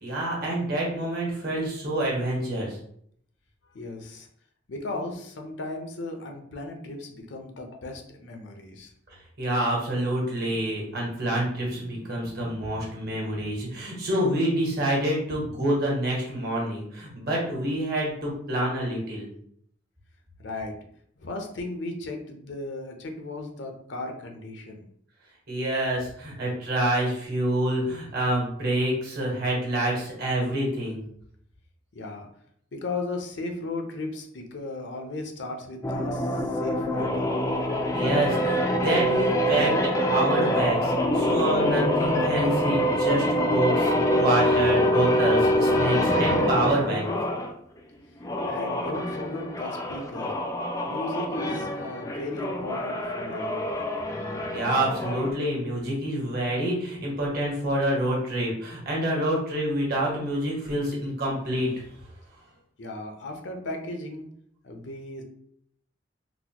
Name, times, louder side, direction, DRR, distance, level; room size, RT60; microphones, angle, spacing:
voice 1, 0.0-2.8 9.4-19.3 25.5-31.0 37.9-47.1 54.5-61.7, right 1 dB, 50° right, -3 dB, 1.2 m, -27 dB
voice 2, 3.7-4.3 4.7-8.9 20.4-20.7 21.2-24.8 31.9-32.3 32.7-37.3 37.7-37.9 48.4-50.3 50.9-53.9 62.8-64.3 64.6-65.2, left 2 dB, 65° left, 4 dB, 0.6 m, -36 dB
sound 1, 35.8-47.5 48.2-55.3, equal, 15° left, 0.3 m, -25 dB
3.9 x 2.1 x 2.9 m, 0.67 s
head